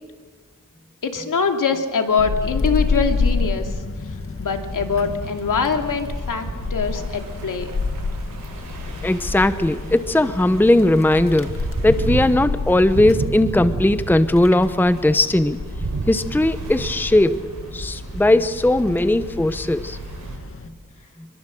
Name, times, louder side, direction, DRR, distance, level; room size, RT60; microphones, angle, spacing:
voice 1, 1.0-3.7 4.4-7.7, left 5 dB, 70° left, 4 dB, 2.8 m, -23 dB
Wind, 2.2-20.7, left 4 dB, 40° left, 2.0 m, -29 dB
sound 1, 4.4-20.4, right 3 dB, 60° right, 6.9 m, -33 dB
sound 2, 6.8-12.3, right 4 dB, 80° right, 5.6 m, -46 dB
voice 2, 9.0-11.5 11.8-15.6 16.1-17.4 17.7-20.0, left 1 dB, 5° left, 12 dB, 0.9 m, -18 dB
26.5 x 22.5 x 7.7 m, 1.5 s
wide cardioid pair, 100°, 33 cm